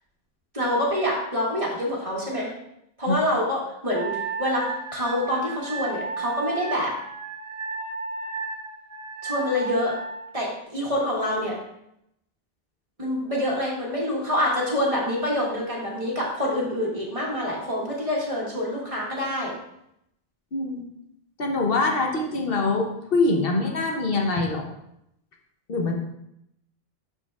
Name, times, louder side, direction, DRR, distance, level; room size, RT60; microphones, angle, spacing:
voice 1, 0.5-2.5 3.0-6.9 9.2-9.9 10.3-11.6 13.0-19.5, left 1 dB, 35° right, -4 dB, 1.8 m, -26 dB
Wind instrument woodwind instrument, 3.9-10.3, right 3 dB, 60° right, 1.5 m, -33 dB
voice 2, 20.5-20.8 21.4-24.6 25.7-25.9, left 3 dB, 65° left, 1 dB, 1.1 m, -24 dB
12.0 x 4.5 x 2.4 m, 0.79 s
omnidirectional pair, 1.0 m